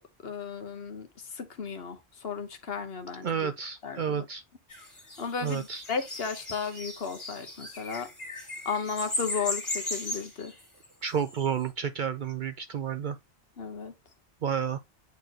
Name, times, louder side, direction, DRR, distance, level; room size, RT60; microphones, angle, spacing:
voice 1, 0.2-3.5 3.8-4.2 5.2-8.1 8.6-10.5 13.6-13.9, left 6 dB, 70° left, 1.3 m, -35 dB
voice 2, 3.2-4.4 5.4-5.8 11.0-13.2 14.4-14.8, right 7 dB, 60° right, 0.6 m, -30 dB
sound 1, 4.7-11.5, left 2 dB, 30° left, 2.5 m, -37 dB
8.1 x 4.4 x 2.9 m
omnidirectional pair, 1.1 m